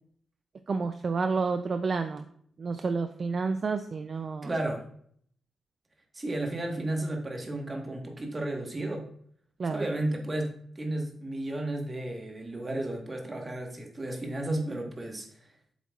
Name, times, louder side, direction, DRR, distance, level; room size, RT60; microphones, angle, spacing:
voice 1, 0.7-2.2 2.6-4.5 9.6-9.8, right 4 dB, 45° right, 8 dB, 0.4 m, -30 dB
voice 2, 4.4-4.9 6.1-9.1 9.7-15.3, right 1 dB, 25° right, 2 dB, 1.4 m, -33 dB
8.3 x 7.1 x 2.4 m, 0.63 s
cardioid pair, 115°, 0 cm